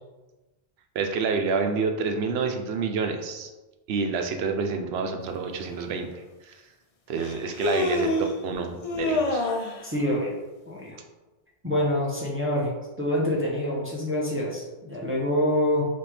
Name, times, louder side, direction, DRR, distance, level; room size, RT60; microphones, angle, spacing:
voice 1, 0.9-3.5 3.9-6.6 7.1-9.5, right 4 dB, 75° right, 5 dB, 0.8 m, -28 dB
Human voice, 5.8-5.9 7.2-8.4 8.8-9.8, left 2 dB, 45° left, 0.5 m, -26 dB
voice 2, 9.8-10.3 10.7-11.0 11.6-15.9, left 1 dB, 15° right, -5 dB, 0.7 m, -26 dB
4.2 x 3.4 x 3.3 m, 1.1 s
omnidirectional pair, 1.1 m